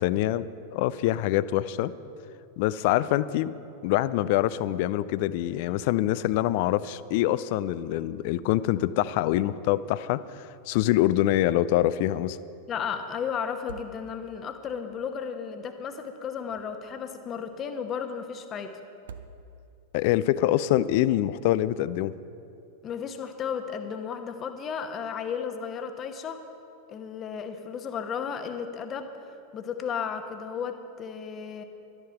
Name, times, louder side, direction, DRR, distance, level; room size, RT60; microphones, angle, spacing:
voice 1, 0.0-1.9 2.6-3.5 3.8-12.4 19.9-22.1, left 14 dB, 50° left, 16 dB, 0.4 m, -25 dB
sound 1, 10.7-11.2 11.5-11.6 13.4-14.5 16.2-17.1 18.9-19.9, right 5 dB, 60° right, 0.6 m, -48 dB
voice 2, 12.7-18.7 22.8-26.4 26.9-29.2 29.5-31.6, left 7 dB, 30° left, 7 dB, 1.1 m, -34 dB
12.5 x 11.0 x 5.7 m, 2.6 s
figure-of-eight pair, 90°, 0 cm